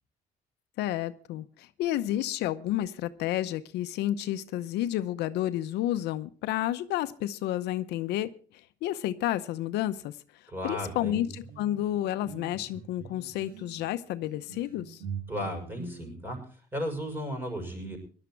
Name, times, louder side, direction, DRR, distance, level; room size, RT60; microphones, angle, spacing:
voice 1, 0.8-8.3 8.8-10.2 10.6-15.0, left 13 dB, 80° left, 12 dB, 0.8 m, -30 dB
voice 2, 10.5-11.2 15.3-18.0, equal, 10° right, 4 dB, 6.3 m, -35 dB
sound 1, 10.9-16.1, right 5 dB, 60° right, 5.2 m, -44 dB
17.5 x 11.5 x 4.6 m, 0.41 s
cardioid pair, 110°, 17 cm